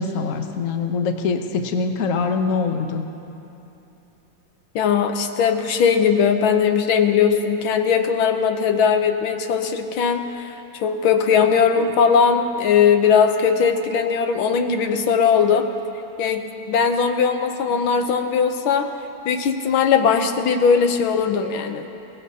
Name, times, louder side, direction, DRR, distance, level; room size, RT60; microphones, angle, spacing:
voice 1, 0.0-3.0, left 4 dB, 55° left, 5 dB, 1.0 m, -23 dB
voice 2, 4.8-10.5 10.8-15.7 16.2-18.9 19.3-21.9, left 6 dB, 90° left, 6 dB, 1.7 m, -19 dB
22.0 x 18.5 x 2.8 m, 2.9 s
omnidirectional pair, 2.2 m